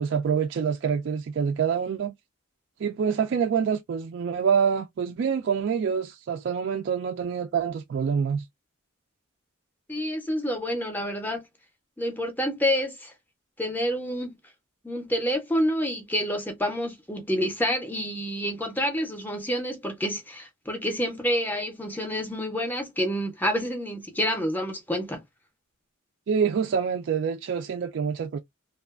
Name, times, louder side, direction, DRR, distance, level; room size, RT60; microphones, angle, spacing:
voice 1, 0.0-2.1 2.8-8.4 26.3-28.4, right 6 dB, 60° right, 0.3 m, -26 dB
voice 2, 9.9-11.4 12.0-13.1 13.6-14.4 14.8-25.2, equal, 10° left, 0.5 m, -28 dB
2.5 x 2.3 x 2.3 m
head